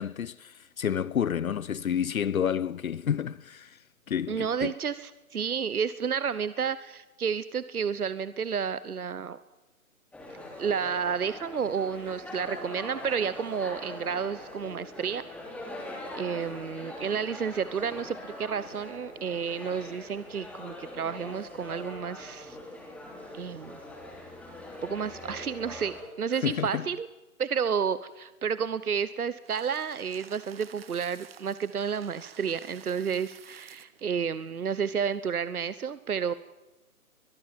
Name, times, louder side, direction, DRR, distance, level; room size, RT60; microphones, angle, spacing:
voice 1, 0.0-4.7 26.4-26.9, left 8 dB, 70° left, 0.7 m, -30 dB
voice 2, 4.3-9.4 10.6-15.2 16.1-22.6 23.3-23.8 24.8-27.1 27.4-36.3, right 6 dB, 80° right, 1.1 m, -31 dB
sound 1, 10.1-26.0, left 1 dB, 5° left, 3.3 m, -42 dB
sound 2, 29.4-34.0, right 8 dB, 40° right, 1.5 m, -52 dB
22.5 x 21.0 x 7.5 m
figure-of-eight pair, 145°, 44 cm